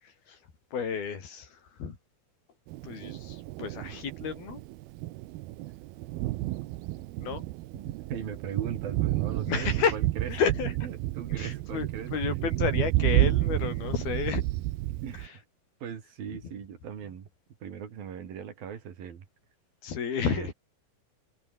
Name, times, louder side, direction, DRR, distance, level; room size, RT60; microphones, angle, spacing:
voice 1, 0.0-0.4 0.7-2.0 2.8-4.6 7.2-7.4 9.5-9.9 10.3-10.7 11.3-14.4 19.8-20.5, left 6 dB, 80° left, 5.9 m, -31 dB
Thunder, 2.7-15.3, right 17 dB, 90° right, 2.7 m, -30 dB
voice 2, 7.7-10.3 10.8-12.4 15.0-15.4 15.8-17.3 17.6-19.3 20.3-20.5, right 8 dB, 70° right, 4.6 m, -39 dB
omnidirectional pair, 4.3 m